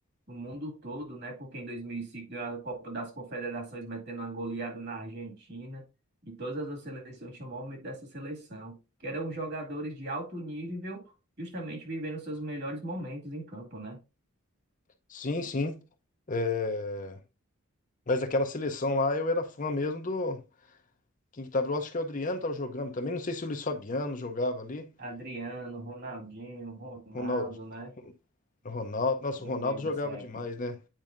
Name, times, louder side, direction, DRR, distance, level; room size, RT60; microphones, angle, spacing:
voice 1, 0.3-5.8 6.3-14.0 25.0-27.9 29.4-30.2, right 2 dB, 45° right, 2.2 m, -38 dB
voice 2, 15.1-15.7 16.3-17.2 18.1-20.4 21.3-24.9 27.1-27.5 28.6-30.8, left 2 dB, 35° left, 0.7 m, -31 dB
8.9 x 4.7 x 2.6 m
head